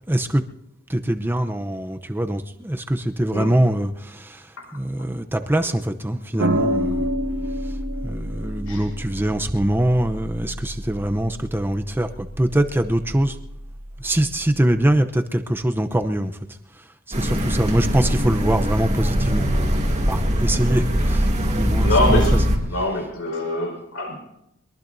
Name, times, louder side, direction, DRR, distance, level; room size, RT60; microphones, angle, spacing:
voice 1, 0.1-0.4 0.9-7.1 7.6-13.4 14.0-19.7 20.1-22.5 22.7-22.9, right 1 dB, 10° right, 0.7 m, -23 dB
sound 1, 6.4-14.9, equal, 80° right, 1.5 m, -29 dB
sound 2, 17.1-22.6, equal, 35° right, 2.1 m, -21 dB
voice 2, 21.8-22.4 22.6-24.2, left 1 dB, 75° left, 5.1 m, -24 dB
22.5 x 22.0 x 2.7 m
head